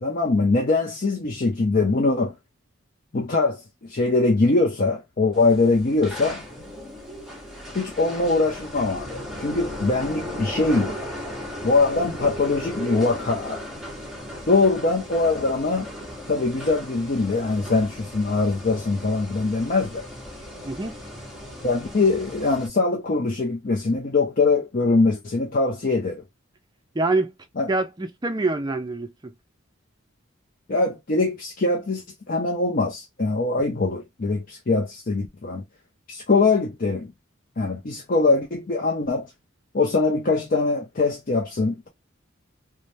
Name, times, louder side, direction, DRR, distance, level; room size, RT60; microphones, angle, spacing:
voice 1, 0.0-2.3 3.1-6.4 7.7-11.0 11.6-13.6 14.5-15.9 16.3-20.1 21.6-26.2 27.6-27.7 30.7-35.6 36.1-37.1 37.6-39.3 39.7-41.9, left 3 dB, 45° left, 0.6 m, -22 dB
sound 1, 5.3-22.7, equal, ahead, 0.9 m, -36 dB
voice 2, 20.6-21.0 26.9-27.3 27.7-29.3, right 2 dB, 20° right, 0.5 m, -25 dB
3.2 x 2.2 x 2.6 m
head